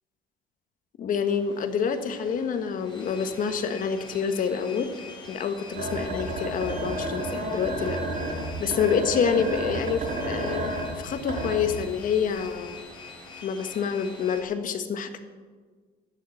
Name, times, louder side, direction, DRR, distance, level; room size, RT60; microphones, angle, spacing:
voice 1, 1.0-4.9 5.3-8.0 8.6-10.6 11.0-12.8 13.4-15.2, left 6 dB, 55° left, 8 dB, 1.3 m, -27 dB
sound 1, 1.2-14.4, left 3 dB, 25° left, 3.4 m, -45 dB
sound 2, 5.7-12.0 12.5-12.6, right 1 dB, 50° right, 4.9 m, -31 dB
13.0 x 6.7 x 8.9 m, 1.5 s
cardioid pair, 110°, 17 cm